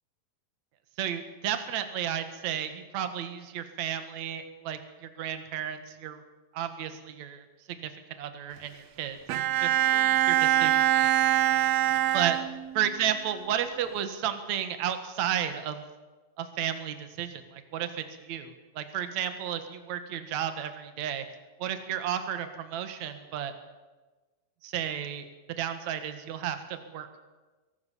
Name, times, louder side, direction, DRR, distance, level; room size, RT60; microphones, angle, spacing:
voice 1, 1.0-6.2 6.5-9.2 9.6-11.1 12.1-12.4 12.8-15.8 16.4-21.2 21.6-23.5 24.6-25.3 25.6-27.2, right 9 dB, 60° right, 8 dB, 2.7 m, -33 dB
Bowed string instrument, 9.3-13.0, right 13 dB, 85° right, 1.5 m, -24 dB
23.5 x 18.5 x 7.3 m, 1.2 s
omnidirectional pair, 4.1 m